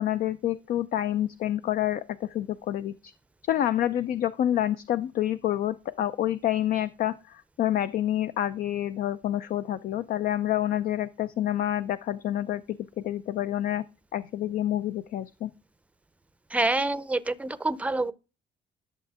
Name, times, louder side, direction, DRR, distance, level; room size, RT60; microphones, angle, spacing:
voice 1, 0.0-3.1 3.5-13.9 14.1-15.5, left 12 dB, 60° left, 0.5 m, -28 dB
voice 2, 16.5-18.1, right 2 dB, 10° right, 0.6 m, -27 dB
11.0 x 6.6 x 3.5 m
cardioid pair, 110°, 17 cm